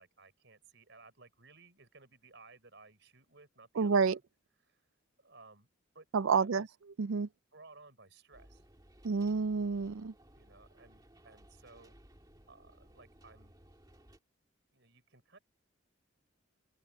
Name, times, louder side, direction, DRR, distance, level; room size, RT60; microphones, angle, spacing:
voice 1, 0.0-4.2 4.6-4.9 5.2-5.7 5.9-6.1 6.3-6.8 7.5-8.6 10.4-12.0 12.5-13.5 14.7-15.4, right 3 dB, 60° right, 5.6 m, -58 dB
voice 2, 3.8-4.2 6.1-6.6 7.0-7.3 9.0-10.1, right 5 dB, 85° right, 0.5 m, -29 dB
sound 1, 8.3-14.2, right 1 dB, 20° right, 2.4 m, -60 dB
open air
head